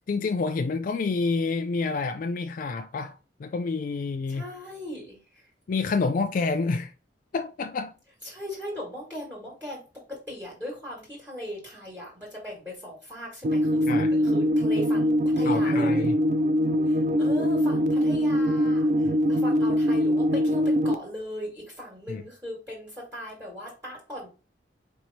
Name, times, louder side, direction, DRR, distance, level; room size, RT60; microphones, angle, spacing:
voice 1, 0.1-4.5 5.7-6.9 7.3-7.9 13.9-14.1 15.4-16.1 19.0-19.2 22.1-22.2, left 4 dB, 45° left, 0.3 m, -28 dB
voice 2, 4.3-5.4 8.2-9.8 10.1-16.1 16.9-24.3, equal, 10° right, 1.6 m, -38 dB
sound 1, 13.4-20.9, equal, 40° right, 0.3 m, -23 dB
4.6 x 2.9 x 4.0 m
head